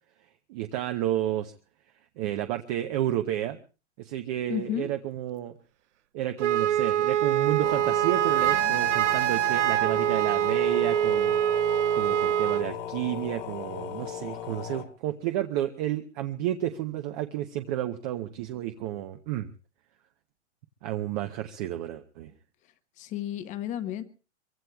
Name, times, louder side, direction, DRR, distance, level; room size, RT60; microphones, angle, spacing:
voice 1, 0.5-1.5 2.2-3.6 4.0-5.5 6.1-11.4 11.9-19.5 20.8-22.3, right 12 dB, 35° right, 7 dB, 0.8 m, -31 dB
voice 2, 4.5-4.9 23.0-24.0, left 11 dB, 20° left, 12 dB, 0.9 m, -32 dB
Wind instrument woodwind instrument, 6.4-12.7, right 11 dB, 80° right, 0.8 m, -24 dB
sound 1, 7.6-14.8, left 10 dB, 50° left, 1.9 m, -38 dB
23.5 x 23.5 x 2.3 m, 0.35 s
hypercardioid pair, 155°, 35 cm